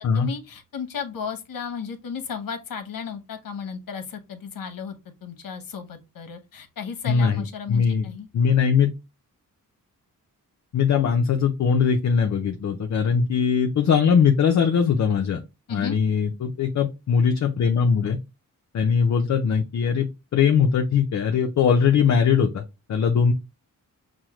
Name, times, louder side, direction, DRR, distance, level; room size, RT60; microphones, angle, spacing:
voice 1, 0.0-8.3 15.7-16.0, left 6 dB, 70° left, 0.9 m, -34 dB
voice 2, 7.1-8.9 10.7-15.4 15.7-18.2 18.7-22.6 22.9-23.3, left 6 dB, 55° left, 0.5 m, -21 dB
6.1 x 2.1 x 2.9 m
wide cardioid pair, 135°, 34 cm